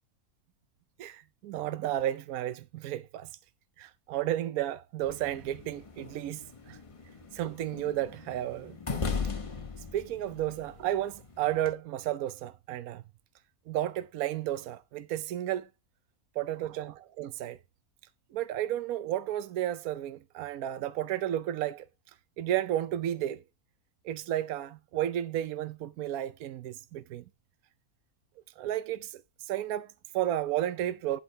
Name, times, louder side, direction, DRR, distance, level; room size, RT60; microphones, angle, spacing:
voice 1, 1.0-3.3 3.8-6.8 7.3-8.8 9.9-13.0 13.7-15.7 16.4-17.6 18.3-21.9 22.4-23.4 24.0-27.2 28.6-31.2, right 12 dB, 75° right, 1.1 m, -32 dB
sound 1, 5.0-11.7, left 4 dB, 30° left, 0.7 m, -39 dB
11.5 x 4.8 x 4.4 m
omnidirectional pair, 1.5 m